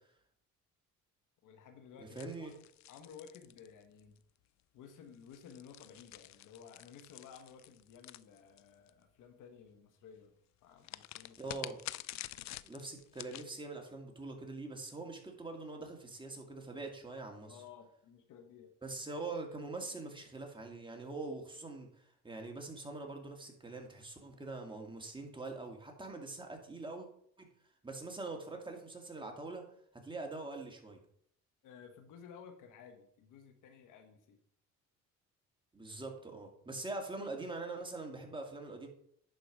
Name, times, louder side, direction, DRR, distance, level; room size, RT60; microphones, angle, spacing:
voice 1, 1.4-2.5 2.9-4.2 4.7-10.3 10.6-11.6 17.5-18.7 31.6-34.4, left 7 dB, 80° left, 6 dB, 1.5 m, -55 dB
voice 2, 2.0-2.5 11.4-11.8 12.6-17.6 18.8-21.9 22.2-27.1 27.4-27.5 27.8-29.6 30.0-31.0 35.7-38.9, right 3 dB, 15° right, 2 dB, 2.1 m, -43 dB
sound 1, 2.2-4.2 5.1-8.9 10.8-13.5, left 15 dB, 60° left, 0.4 m, -48 dB
11.0 x 4.7 x 4.8 m, 0.66 s
cardioid pair, 90°, 31 cm